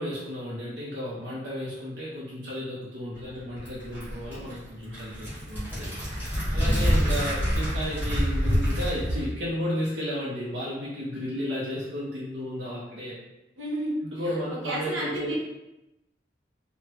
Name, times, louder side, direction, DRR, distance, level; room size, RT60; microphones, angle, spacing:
voice 1, 0.0-5.9 6.5-13.2 14.1-15.3, equal, 60° right, -8 dB, 0.7 m, -33 dB
sound 1, 3.2-9.2, equal, 10° right, 1.3 m, -27 dB
voice 2, 6.7-7.6 13.6-14.0 14.6-15.3, right 1 dB, 85° right, -5 dB, 0.9 m, -33 dB
3.2 x 2.1 x 2.9 m, 0.94 s
head